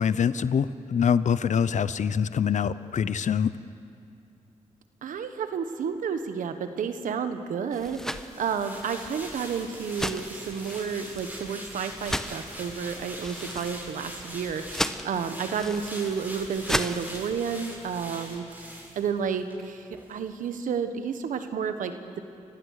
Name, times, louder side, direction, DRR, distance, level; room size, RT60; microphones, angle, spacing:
voice 1, 0.0-3.5, left 7 dB, 70° left, 15 dB, 0.8 m, -24 dB
voice 2, 5.0-22.2, right 6 dB, 85° right, 9 dB, 1.3 m, -31 dB
sound 1, 7.7-17.2, equal, 5° left, 1.1 m, -36 dB
sound 2, 8.0-19.6 19.9-20.1, equal, 15° right, 7.2 m, -42 dB
29.0 x 15.5 x 6.6 m, 2.4 s
cardioid pair, 55°, 13 cm